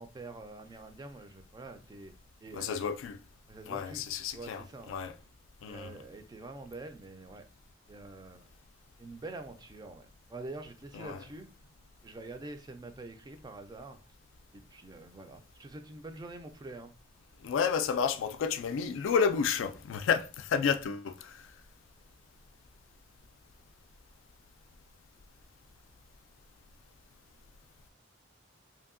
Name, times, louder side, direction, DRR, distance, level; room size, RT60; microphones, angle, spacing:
voice 1, 0.0-2.1 2.4-2.8 3.5-4.1 4.3-5.0 5.7-7.4 7.9-8.5 9.0-11.5 12.0-14.1 14.5-16.9, right 2 dB, 20° right, 0.3 m, -46 dB
voice 2, 2.5-3.2 3.7-5.2 5.6-6.0 10.9-11.2 17.4-21.4, left 6 dB, 85° left, 0.3 m, -31 dB
2.7 x 2.6 x 2.5 m
head